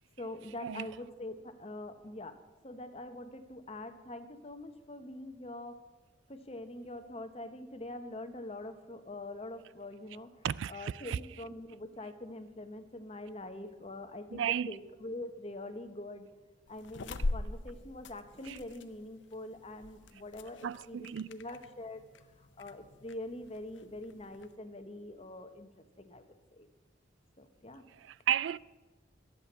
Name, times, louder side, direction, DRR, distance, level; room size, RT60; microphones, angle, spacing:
voice 1, 0.2-2.4 2.6-5.8 6.3-10.3 10.7-16.3 16.7-22.0 22.4-25.7 26.0-26.2 26.5-26.7 27.4-27.9, left 1 dB, 30° left, 1.1 m, -44 dB
voice 2, 10.4-11.2 14.3-14.8 18.5-18.6 20.6-21.3 27.9-28.6, right 9 dB, 70° right, 0.3 m, -33 dB
sound 1, 16.7-24.5, left 2 dB, 70° left, 0.7 m, -42 dB
11.5 x 7.8 x 9.4 m
head